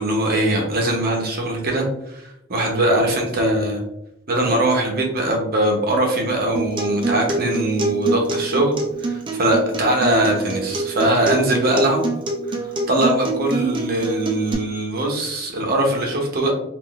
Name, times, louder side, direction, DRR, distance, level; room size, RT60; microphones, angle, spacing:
voice 1, 0.0-3.8 4.3-8.7 9.0-12.1 12.5-12.6 12.9-16.5, right 1 dB, 50° right, 1 dB, 0.7 m, -21 dB
Acoustic guitar, 6.6-14.5, right 3 dB, 25° right, 0.4 m, -26 dB
3.6 x 2.4 x 2.4 m, 0.85 s
head